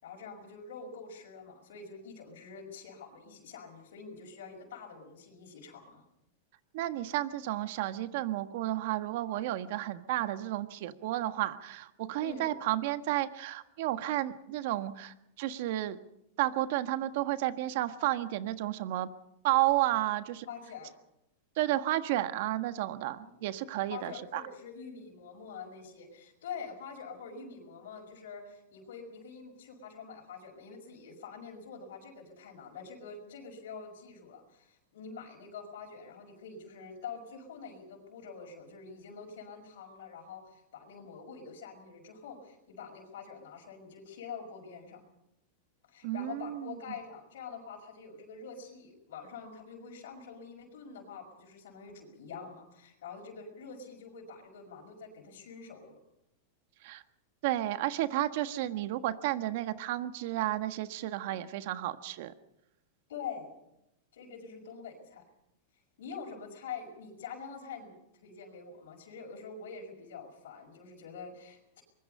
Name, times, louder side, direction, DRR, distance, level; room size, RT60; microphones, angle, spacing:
voice 1, 0.0-6.0 12.2-12.5 20.1-20.9 23.2-23.4 23.9-45.0 45.9-56.0 63.1-63.5 64.1-65.2 66.0-67.9 68.2-71.8, left 5 dB, 80° left, 2 dB, 5.9 m, -46 dB
voice 2, 6.7-16.0 16.4-19.1 19.4-20.5 21.6-24.4 46.0-46.7 56.8-57.0 57.4-62.3, right 15 dB, 60° right, 11 dB, 1.5 m, -32 dB
24.0 x 21.5 x 5.6 m, 0.80 s
supercardioid pair, 140°, 0 cm